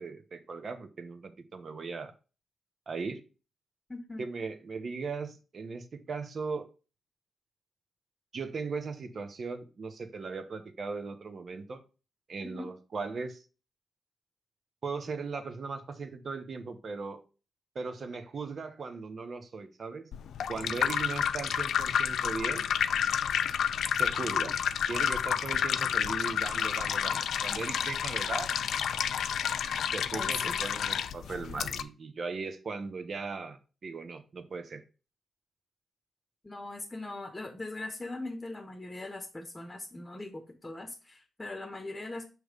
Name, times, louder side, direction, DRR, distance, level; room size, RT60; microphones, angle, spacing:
voice 1, 0.0-2.1 2.9-3.2 4.2-6.7 8.3-11.8 12.3-13.4 14.8-17.2 17.7-20.1 20.5-22.7 23.9-24.6 24.8-28.5 29.9-34.8, right 4 dB, 55° right, 9 dB, 0.9 m, -38 dB
voice 2, 3.9-4.3 12.4-12.7 30.1-30.6 36.4-42.3, left 2 dB, 20° left, 4 dB, 1.0 m, -40 dB
sound 1, 20.1-31.8, left 8 dB, 80° left, 0.4 m, -30 dB
6.5 x 3.1 x 5.0 m, 0.33 s
cardioid pair, 70°, 0 cm